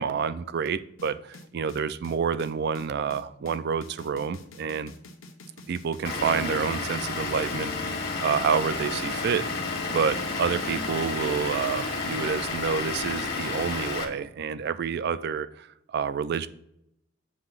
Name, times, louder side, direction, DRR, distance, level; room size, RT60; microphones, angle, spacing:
voice 1, 0.0-4.9 5.7-9.5 9.9-16.5, right 6 dB, 55° right, 14 dB, 0.4 m, -28 dB
sound 1, 1.0-12.3, left 1 dB, 90° left, 1.1 m, -44 dB
Vehicle / Engine, 6.0-14.0, left 3 dB, 55° left, 1.5 m, -31 dB
7.5 x 2.9 x 5.7 m, 0.77 s
head